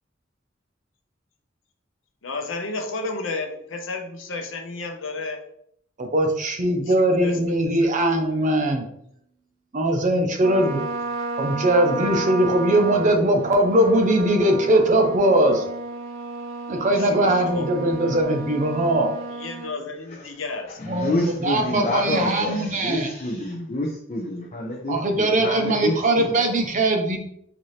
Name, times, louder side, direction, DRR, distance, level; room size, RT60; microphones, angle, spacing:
voice 1, 2.2-5.4 6.9-7.4 7.8-7.9 8.2-8.5 17.0-18.2 19.3-20.8, left 3 dB, 75° left, 5 dB, 0.6 m, -33 dB
voice 2, 6.0-8.8 9.7-10.8 11.4-15.6 16.7-19.1 20.8-23.1 24.9-27.2, right 1 dB, 40° right, 3 dB, 0.6 m, -20 dB
Trumpet, 10.4-19.7, right 3 dB, 85° right, 0.5 m, -32 dB
voice 3, 20.8-26.5, left 2 dB, 35° left, -3 dB, 0.5 m, -28 dB
4.1 x 2.6 x 3.1 m, 0.69 s
head